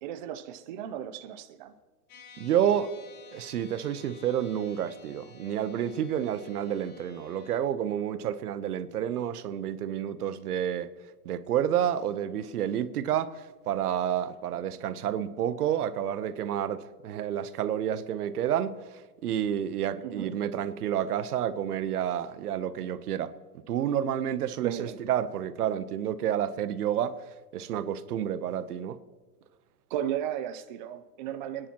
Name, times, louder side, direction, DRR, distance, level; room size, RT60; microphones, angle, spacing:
voice 1, 0.0-1.7 14.7-14.8 20.0-20.3 24.6-25.0 29.9-31.7, right 10 dB, 35° right, 0.5 m, -35 dB
sound 1, 2.1-7.6, left 5 dB, 55° left, 2.9 m, -52 dB
voice 2, 2.4-2.9 3.3-10.9 11.2-23.3 23.7-27.2 27.5-29.0, right 10 dB, 80° right, 1.0 m, -29 dB
26.5 x 10.0 x 3.0 m
hypercardioid pair, 150°, 45 cm